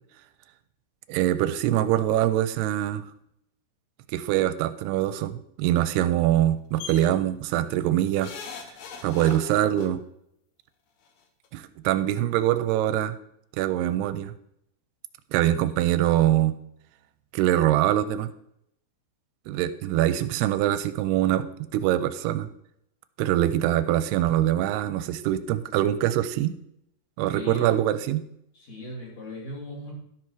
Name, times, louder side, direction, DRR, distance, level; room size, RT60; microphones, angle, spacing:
voice 1, 1.1-3.1 4.1-8.3 9.0-10.0 11.5-13.2 13.6-14.3 15.3-16.6 17.3-18.3 19.5-21.5 21.7-22.5 23.2-26.6 27.2-28.2, right 12 dB, 85° right, 12 dB, 2.6 m, -23 dB
sound 1, 6.8-7.1 8.2-9.9 11.1-11.2 11.4-11.5, left 5 dB, 75° left, 1.7 m, -39 dB
voice 2, 27.3-27.8 28.5-29.9, left 1 dB, 45° left, -3 dB, 3.3 m, -38 dB
12.5 x 6.0 x 4.6 m, 0.75 s
omnidirectional pair, 4.6 m